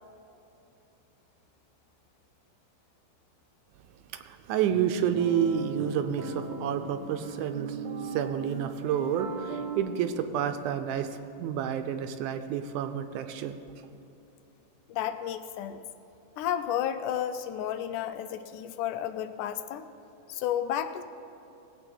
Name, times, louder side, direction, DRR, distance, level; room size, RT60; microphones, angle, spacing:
voice 1, 4.1-13.6, right 9 dB, 80° right, 8 dB, 1.9 m, -30 dB
sound 1, 4.7-9.8, right 5 dB, 60° right, 1.6 m, -38 dB
voice 2, 14.9-15.8 16.4-19.9 20.3-21.0, left 10 dB, 80° left, 10 dB, 2.0 m, -32 dB
19.0 x 8.3 x 4.5 m, 2.8 s
omnidirectional pair, 3.7 m